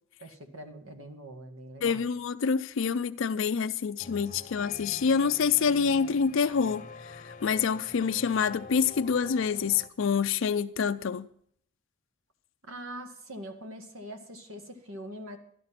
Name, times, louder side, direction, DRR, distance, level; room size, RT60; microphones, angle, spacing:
voice 1, 0.2-2.1 12.6-15.4, right 1 dB, 75° right, 1.9 m, -43 dB
voice 2, 1.8-11.3, left 6 dB, 65° left, 0.4 m, -27 dB
sound 1, 4.0-9.9, left 4 dB, 35° left, 0.8 m, -46 dB
12.0 x 12.0 x 5.8 m
head